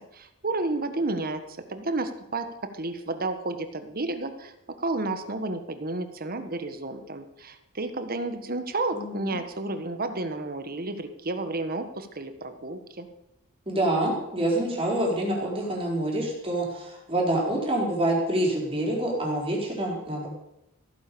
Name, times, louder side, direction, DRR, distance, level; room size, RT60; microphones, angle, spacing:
voice 1, 0.0-1.4 1.7-2.5 2.7-4.5 4.8-13.1, right 2 dB, 40° right, 8 dB, 1.5 m, -31 dB
voice 2, 8.9-9.4 13.7-20.3, right 1 dB, 25° right, -2 dB, 4.3 m, -27 dB
15.5 x 9.6 x 6.9 m, 0.88 s
head